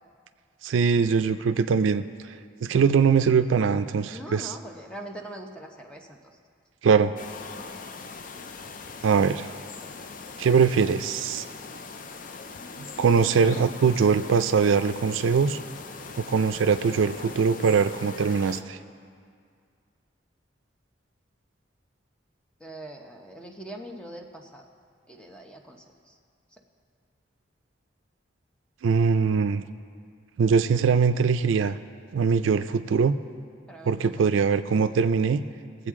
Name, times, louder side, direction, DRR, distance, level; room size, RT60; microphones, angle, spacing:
voice 1, 0.6-2.0 2.6-4.5 6.8-7.1 9.0-9.5 10.4-11.4 13.0-15.6 16.2-18.8 28.8-29.6 30.4-31.8 32.1-33.1 33.8-35.4, right 5 dB, 85° right, 11 dB, 0.4 m, -22 dB
voice 2, 4.1-6.2 7.5-7.8 22.6-24.6 25.1-26.2 26.5-26.6 33.7-34.4, right 1 dB, 5° left, 2 dB, 0.7 m, -42 dB
sound 1, 7.2-18.6, left 4 dB, 45° left, 0.5 m, -41 dB
20.5 x 8.0 x 3.7 m, 2.2 s
head